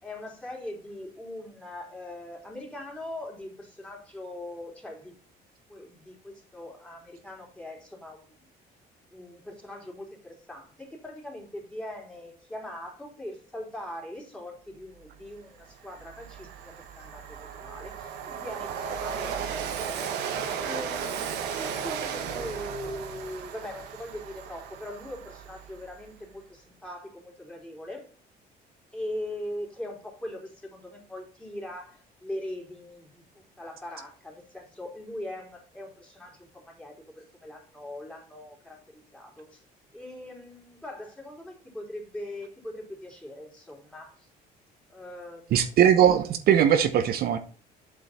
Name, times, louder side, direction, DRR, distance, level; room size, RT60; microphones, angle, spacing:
voice 1, 0.0-5.2 5.7-8.4 9.1-20.2 20.6-28.1 28.9-39.6 39.9-44.3 44.9-45.8, left 1 dB, 5° left, 3.5 m, -41 dB
Train, 15.1-15.2 15.6-26.0, right 7 dB, 85° right, 1.3 m, -35 dB
voice 2, 45.5-47.4, right 9 dB, 65° right, 0.8 m, -20 dB
8.0 x 5.4 x 4.2 m
cardioid pair, 110°, 17 cm